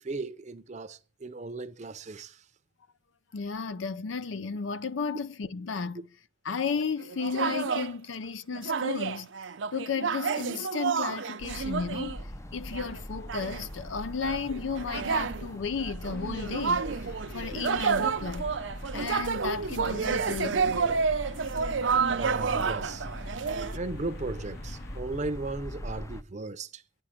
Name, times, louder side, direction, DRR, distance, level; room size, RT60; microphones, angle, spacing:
voice 1, 0.0-2.4 22.1-23.1 23.7-26.8, right 3 dB, 40° right, 0.6 m, -36 dB
voice 2, 3.3-6.0 6.4-9.3 9.7-12.2 12.5-16.9 17.3-18.5 18.9-20.9, left 5 dB, 85° left, 0.6 m, -33 dB
sound 1, 7.0-7.9 8.5-12.2 12.7-13.0 13.3-13.7 14.2-23.8, right 5 dB, 85° right, 0.6 m, -30 dB
sound 2, 11.4-26.2, equal, 15° left, 0.4 m, -41 dB
sound 3, 16.1-25.0, left 3 dB, 60° left, 1.0 m, -50 dB
9.6 x 6.3 x 5.8 m
head